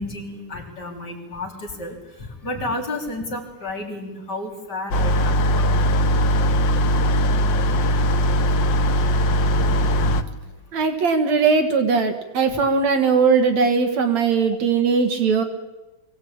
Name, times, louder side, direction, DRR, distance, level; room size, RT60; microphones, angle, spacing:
voice 1, 0.0-5.9 8.7-8.8 9.6-9.7 10.0-10.1, left 2 dB, 30° left, 1 dB, 3.6 m, -32 dB
sound 1, 4.9-10.2, equal, 85° left, 1.0 m, -19 dB
voice 2, 10.7-15.4, right 5 dB, 65° right, 7 dB, 2.7 m, -19 dB
23.5 x 17.5 x 8.7 m, 1.1 s
omnidirectional pair, 3.6 m